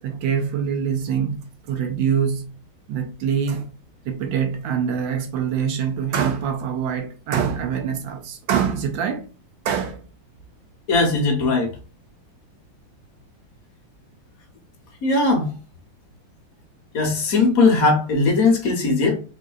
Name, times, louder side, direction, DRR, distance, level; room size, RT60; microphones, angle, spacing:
voice 1, 0.0-2.6 2.9-3.7 4.0-9.2 9.6-10.0, right 7 dB, 75° right, 1.2 m, -24 dB
voice 2, 10.9-11.7 15.0-15.5 16.9-19.2, left 3 dB, 60° left, 1.0 m, -19 dB
3.8 x 2.6 x 2.3 m
omnidirectional pair, 2.2 m